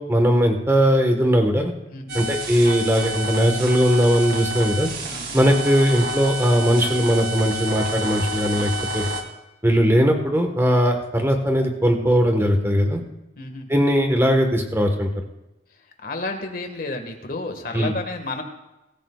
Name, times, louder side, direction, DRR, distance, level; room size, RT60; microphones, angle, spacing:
voice 1, 0.0-1.7 2.1-4.9 5.3-9.1 9.6-13.0 13.7-15.1 17.7-17.9, equal, 15° right, 3 dB, 1.5 m, -19 dB
voice 2, 1.9-2.2 5.1-5.4 13.4-13.8 16.0-18.4, left 2 dB, 50° left, 4 dB, 1.8 m, -31 dB
sound 1, 2.1-9.2, right 1 dB, 60° right, 2.2 m, -29 dB
23.5 x 14.0 x 2.4 m, 0.98 s
head